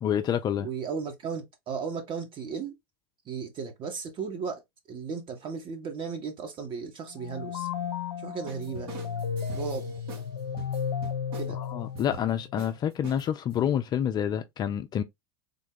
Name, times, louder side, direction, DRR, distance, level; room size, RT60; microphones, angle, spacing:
voice 1, 0.0-0.7 11.5-15.0, left 9 dB, 30° left, 0.4 m, -28 dB
voice 2, 0.6-2.7 3.2-4.6 4.9-7.7 8.2-8.9 9.5-9.9 11.3-11.6, right 5 dB, 40° right, 1.3 m, -35 dB
sound 1, 7.1-12.6, left 7 dB, 90° left, 0.5 m, -34 dB
sound 2, 8.5-10.3 10.6-11.5 11.9-12.3 12.6-12.7 13.0-13.7, right 5 dB, 60° right, 1.5 m, -44 dB
3.6 x 2.2 x 3.7 m
hypercardioid pair, 90°, 13 cm